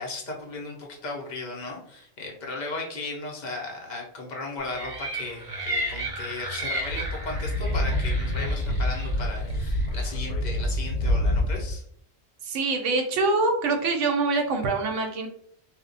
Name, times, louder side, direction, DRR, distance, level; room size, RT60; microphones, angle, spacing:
voice 1, 0.0-11.8, left 2 dB, 50° left, 0 dB, 0.6 m, -36 dB
sound 1, 4.7-10.1, equal, 40° right, 0.5 m, -33 dB
Speech / Wind, 6.9-11.8, left 1 dB, 75° left, 1.0 m, -27 dB
voice 2, 12.4-15.3, right 3 dB, 75° right, 4 dB, 0.9 m, -24 dB
2.2 x 2.1 x 3.8 m, 0.65 s
omnidirectional pair, 1.3 m